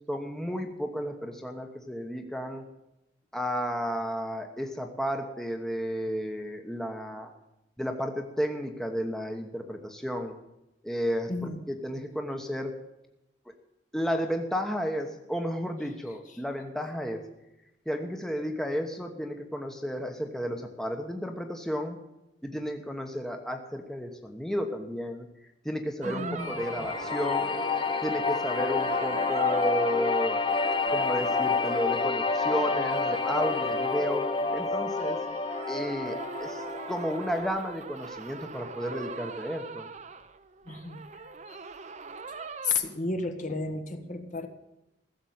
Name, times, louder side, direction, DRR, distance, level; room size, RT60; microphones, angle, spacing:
voice 1, 0.1-2.7 3.3-7.3 7.8-10.4 10.8-12.8 13.5-13.6 13.9-17.2 17.8-22.0 22.4-25.3 25.6-27.7 28.0-30.4 30.9-34.3 34.5-35.2 35.7-39.9, equal, 5° left, 4 dB, 1.1 m, -32 dB
voice 2, 11.3-11.6 26.0-26.6 40.7-41.0 41.5-41.6 42.4-44.5, left 4 dB, 45° left, 6 dB, 1.4 m, -32 dB
sound 1, 26.0-42.7, right 4 dB, 40° right, 0.8 m, -41 dB
sound 2, 26.4-37.4, left 4 dB, 30° left, 0.7 m, -29 dB
15.5 x 7.2 x 9.4 m, 0.88 s
head